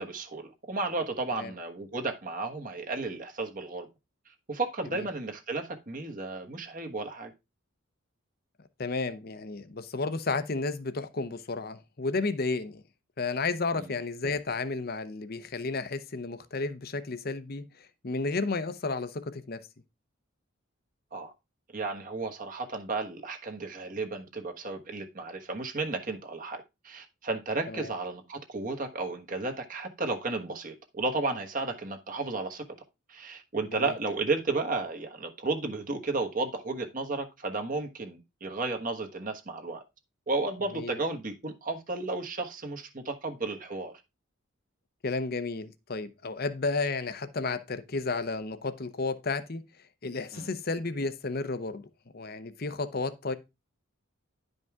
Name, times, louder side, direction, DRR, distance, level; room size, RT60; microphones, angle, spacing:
voice 1, 0.0-3.9 4.5-7.3 13.7-13.9 21.1-21.3 21.7-32.6 33.1-39.8 40.3-43.9 50.3-50.5, right 3 dB, 40° right, 1.3 m, -33 dB
voice 2, 8.8-12.8 13.2-17.6 18.0-19.6 27.7-27.9 33.7-33.9 40.7-41.0 45.0-49.6 50.0-51.8 52.1-53.3, left 3 dB, 45° left, 0.7 m, -32 dB
11.0 x 5.3 x 3.6 m
head